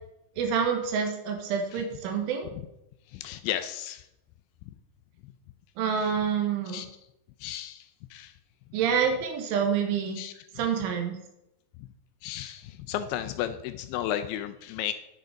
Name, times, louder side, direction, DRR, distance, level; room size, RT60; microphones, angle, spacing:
voice 1, 0.4-2.5 5.8-6.8 8.7-10.2 10.6-11.2, right 7 dB, 85° right, 3 dB, 3.8 m, -27 dB
voice 2, 3.1-4.1 4.7-4.8 6.0-6.1 6.7-6.9 7.4-8.3 10.2-10.3 12.2-14.9, left 11 dB, 80° left, 9 dB, 2.7 m, -34 dB
10.5 x 6.5 x 5.0 m, 0.85 s
omnidirectional pair, 5.4 m